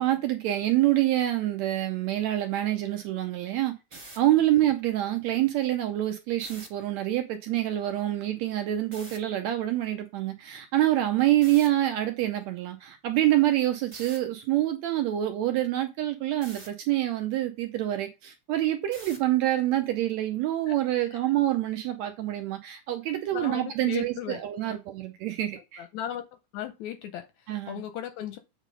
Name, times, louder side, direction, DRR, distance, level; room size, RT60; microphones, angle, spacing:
voice 1, 0.0-25.9 27.5-27.8, right 14 dB, 75° right, 1.7 m, -26 dB
sound 1, 3.8-4.2 6.3-6.7 8.9-9.2 11.4-11.7 13.9-14.2 16.4-16.7 18.9-19.3, right 1 dB, 15° right, 1.2 m, -44 dB
voice 2, 23.3-24.7 25.8-26.2 26.5-27.3 27.7-28.4, left 10 dB, 80° left, 1.7 m, -36 dB
7.4 x 3.6 x 5.1 m
omnidirectional pair, 3.7 m